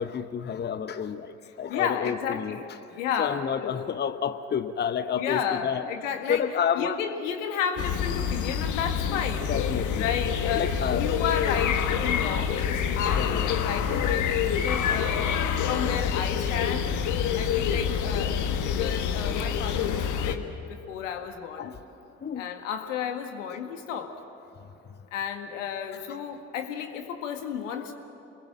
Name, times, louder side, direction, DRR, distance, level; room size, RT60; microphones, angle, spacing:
voice 1, 0.0-2.6 2.9-5.9 6.3-7.0 9.4-10.0 10.5-11.1 12.4-12.5 13.1-13.5 18.9-19.0 21.6-21.8 22.2-22.5, left 7 dB, 25° left, 11 dB, 0.9 m, -30 dB
voice 2, 1.7-2.7 2.9-3.8 5.1-6.5 6.8-9.6 10.0-15.4 15.6-20.4 20.7-21.7 22.4-24.2 25.1-27.9, left 8 dB, 75° left, 6 dB, 1.9 m, -32 dB
sound 1, 7.8-20.4, left 7 dB, 50° left, 1.5 m, -27 dB
27.5 x 21.0 x 7.4 m, 2.8 s
figure-of-eight pair, 60°, 38 cm